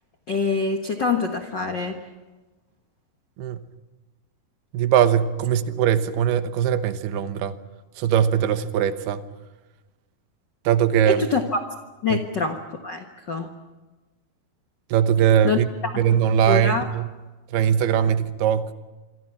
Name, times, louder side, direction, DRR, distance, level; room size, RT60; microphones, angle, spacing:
voice 1, 0.3-2.0 11.0-11.6 12.0-13.5 15.4-15.9 16.4-16.9, left 4 dB, 70° left, 4 dB, 1.0 m, -25 dB
voice 2, 4.7-7.6 8.0-9.3 10.7-11.3 12.1-12.2 14.9-15.7 16.0-17.1 17.5-18.7, right 9 dB, 90° right, 11 dB, 3.1 m, -21 dB
26.5 x 25.5 x 5.9 m, 1.2 s
omnidirectional pair, 4.4 m